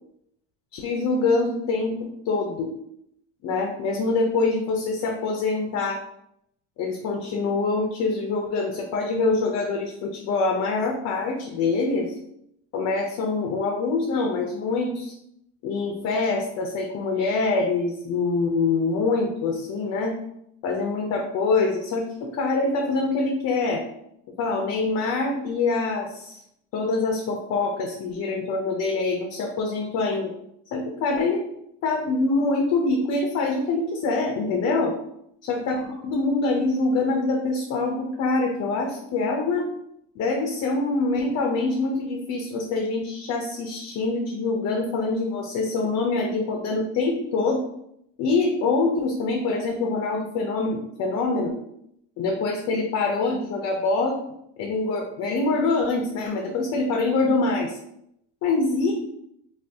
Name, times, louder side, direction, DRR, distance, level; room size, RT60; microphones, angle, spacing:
voice 1, 0.7-2.7 3.4-6.0 6.8-12.2 12.7-15.1 15.6-20.2 20.6-23.8 24.4-26.4 26.7-30.3 30.7-31.4 31.8-35.0 35.4-39.7 40.2-47.6 48.2-51.6 52.2-54.2 54.6-57.8 58.4-58.9, left 3 dB, 45° left, 2 dB, 0.6 m, -25 dB
2.5 x 2.4 x 3.4 m, 0.76 s
supercardioid pair, 95°, 36 cm